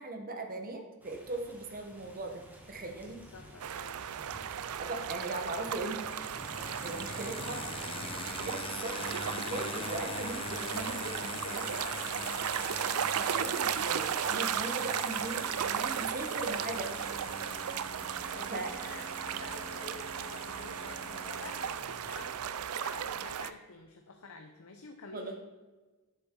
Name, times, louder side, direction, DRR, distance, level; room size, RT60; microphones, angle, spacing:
voice 1, 0.0-3.2 4.8-6.0 6.8-7.6 8.0-11.6 13.1-16.9 18.5-18.7 25.1-25.3, right 2 dB, 40° right, 4 dB, 1.2 m, -39 dB
sound 1, 1.0-8.7, equal, 10° right, 1.4 m, -55 dB
voice 2, 3.3-4.0 6.6-6.9 9.5-9.7 11.3-12.8 17.5-25.3, left 4 dB, 75° left, 4 dB, 0.8 m, -49 dB
sound 2, 3.6-23.5, right 9 dB, 80° right, 0.4 m, -36 dB
sound 3, 5.7-22.4, left 5 dB, 25° left, 0.4 m, -43 dB
9.7 x 7.7 x 3.9 m, 1.2 s
head